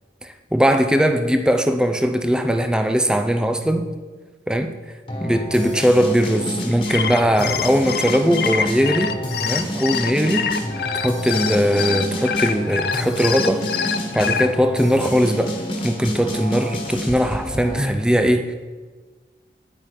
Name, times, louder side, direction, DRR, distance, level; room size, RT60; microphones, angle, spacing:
voice 1, 0.2-3.9 4.5-4.7 5.2-10.5 11.0-15.6 15.8-18.5, equal, 5° right, 7 dB, 0.6 m, -20 dB
sound 1, 5.1-18.0, equal, 30° left, 1.6 m, -29 dB
sound 2, 6.7-14.5, left 7 dB, 60° left, 0.6 m, -25 dB
10.5 x 8.7 x 5.0 m, 1.4 s
head